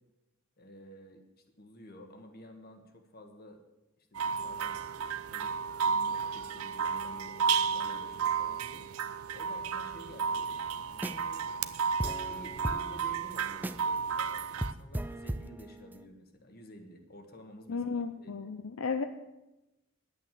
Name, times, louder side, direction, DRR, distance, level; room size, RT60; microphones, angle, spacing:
voice 1, 0.6-1.2 1.6-3.6 4.0-8.9 9.3-11.5 12.0-17.8 18.2-18.5, equal, 45° left, 6 dB, 1.5 m, -51 dB
sound 1, 4.1-14.7, right 6 dB, 80° right, 0.6 m, -33 dB
sound 2, 4.4-10.5, right 9 dB, 35° right, 0.9 m, -52 dB
sound 3, 10.9-11.4 11.7-11.8 12.0-14.0 14.3-14.4 14.6-16.1, right 1 dB, 10° right, 0.3 m, -37 dB
voice 2, 17.7-19.1, left 5 dB, 70° left, 7 dB, 0.6 m, -34 dB
11.0 x 8.7 x 7.4 m, 0.98 s
head